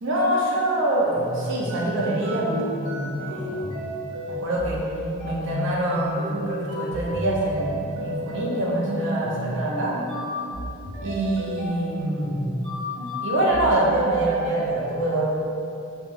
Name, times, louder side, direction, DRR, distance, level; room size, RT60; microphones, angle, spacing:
voice 1, 0.0-3.7 4.3-4.8 5.2-9.9 11.0-12.5 13.2-15.3, right 1 dB, 55° right, -4 dB, 0.5 m, -25 dB
sound 1, 1.0-14.7, equal, 85° right, 1.0 m, -32 dB
2.4 x 2.1 x 3.1 m, 2.6 s
head